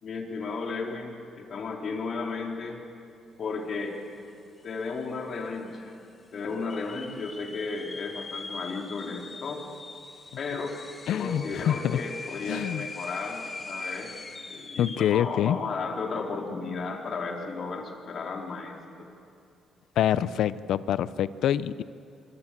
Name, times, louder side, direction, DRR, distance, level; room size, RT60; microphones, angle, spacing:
voice 1, 0.0-2.8 3.4-4.0 4.6-5.9 6.3-9.6 10.4-10.8 11.1-14.1 14.5-19.1, left 4 dB, 55° left, 2 dB, 3.7 m, -34 dB
sound 1, 4.3-4.4 4.6-5.2 5.7-5.8 6.5-15.2, left 3 dB, 30° left, 2.4 m, -41 dB
voice 2, 11.1-12.0 12.5-12.8 14.8-15.6 20.0-21.8, left 10 dB, 75° left, 16 dB, 0.7 m, -26 dB
25.0 x 25.0 x 7.6 m, 2.5 s
cardioid pair, 90°, 0 cm